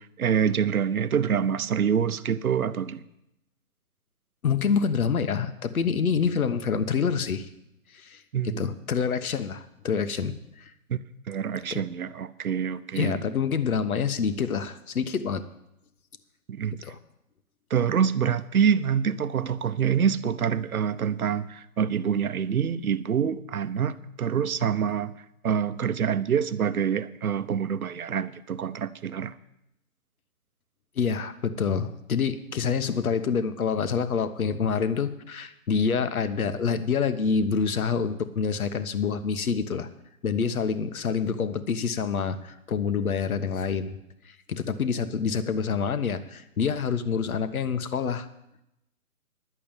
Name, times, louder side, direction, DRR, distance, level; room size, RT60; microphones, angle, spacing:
voice 1, 0.0-3.0 8.3-8.7 10.9-11.0 11.3-13.2 16.5-16.8 17.7-25.1 25.4-29.3, right 7 dB, 65° right, 14 dB, 0.8 m, -26 dB
voice 2, 4.4-7.5 7.9-10.7 11.7-11.8 12.9-15.4 16.8-17.0 31.0-39.9 40.2-44.0 44.2-48.3, left 6 dB, 65° left, 11 dB, 1.2 m, -27 dB
11.0 x 6.8 x 8.9 m, 0.85 s
hypercardioid pair, 165°, 45 cm